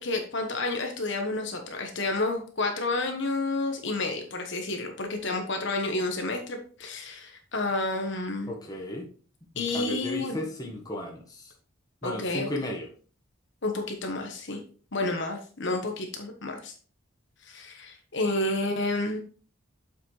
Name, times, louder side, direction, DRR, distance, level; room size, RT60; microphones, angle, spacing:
voice 1, 0.0-8.5 9.6-10.4 12.0-12.5 13.6-14.6 14.9-16.7 17.4-19.2, left 2 dB, 55° left, 3 dB, 1.2 m, -30 dB
voice 2, 8.5-9.1 9.5-11.5 12.0-12.9, left 1 dB, 20° left, 0 dB, 1.4 m, -35 dB
7.5 x 6.0 x 3.2 m, 0.41 s
head